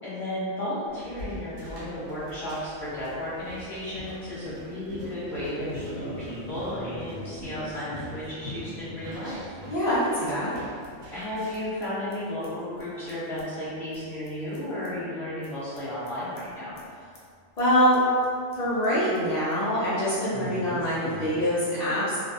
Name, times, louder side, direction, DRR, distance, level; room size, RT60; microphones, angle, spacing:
voice 1, 0.0-9.6 11.1-16.8, left 1 dB, 30° left, -12 dB, 1.1 m, -34 dB
sound 1, 0.9-11.8, equal, 60° right, 1.0 m, -43 dB
sound 2, 5.2-10.6 10.8-10.9 11.2-11.3 11.5-11.9 12.1-14.9 15.4-15.5 15.7-16.5 16.8-16.9 17.1-17.2 17.6-18.0 18.2-18.3 18.5-19.2 19.5-19.6 20.3-21.5, left 1 dB, 90° left, 1.0 m, -41 dB
voice 2, 9.7-10.5 17.6-18.0 18.5-22.2, equal, 45° left, -13 dB, 0.5 m, -24 dB
2.4 x 2.4 x 2.6 m, 2.2 s
omnidirectional pair, 1.3 m